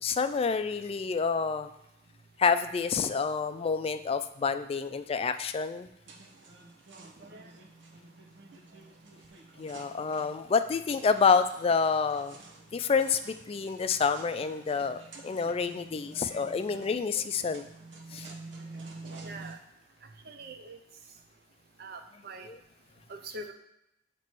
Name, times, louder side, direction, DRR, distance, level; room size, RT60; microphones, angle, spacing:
voice 1, 0.0-1.7 2.4-5.9 9.6-12.4 12.7-17.7 18.1-18.3 22.5-22.6, left 5 dB, 35° left, 10 dB, 0.3 m, -28 dB
sound 1, 6.0-19.5, right 3 dB, 90° right, 0.9 m, -49 dB
voice 2, 19.2-19.6 20.2-20.8 21.8-22.5 23.1-23.5, right 2 dB, 60° right, 5 dB, 0.6 m, -43 dB
7.3 x 3.0 x 4.5 m, 0.84 s
head